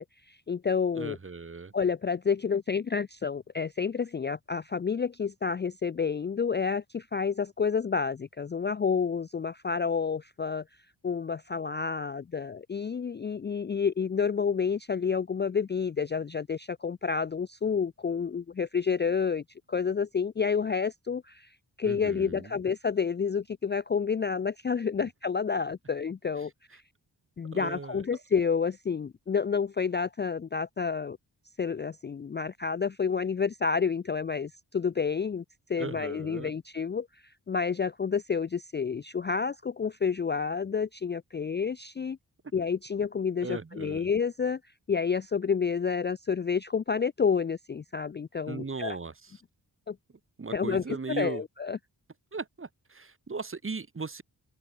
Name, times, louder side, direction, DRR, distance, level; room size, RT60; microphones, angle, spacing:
voice 1, 0.0-1.2 1.7-10.6 11.0-19.4 19.7-21.5 21.8-26.5 27.4-31.2 31.6-35.4 35.7-37.1 37.5-42.2 42.5-44.6 44.9-49.0 49.9-50.0 50.5-51.8, left 6 dB, 30° left, 0.4 m, -29 dB
voice 2, 0.9-1.7 21.8-22.5 27.5-28.0 35.8-36.5 43.4-44.1 48.5-49.1 50.4-51.4 52.3-54.2, right 4 dB, 30° right, 1.2 m, -37 dB
wide cardioid pair, 85°, 41 cm